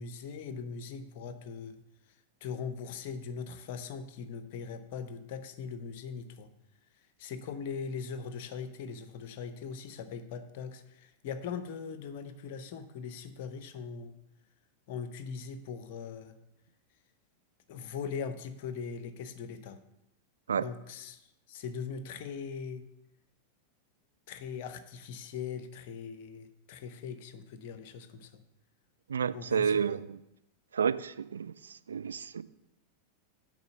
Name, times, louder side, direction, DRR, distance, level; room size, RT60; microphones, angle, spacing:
voice 1, 0.0-1.8 2.4-6.5 7.2-14.1 14.9-16.3 17.7-19.8 20.6-22.8 24.3-28.4 29.3-30.0, left 6 dB, 50° left, 10 dB, 0.8 m, -40 dB
voice 2, 29.1-30.2 30.7-31.5 31.9-32.4, right 7 dB, 70° right, 14 dB, 0.3 m, -30 dB
6.8 x 4.9 x 6.8 m, 0.87 s
figure-of-eight pair, 90°, 0 cm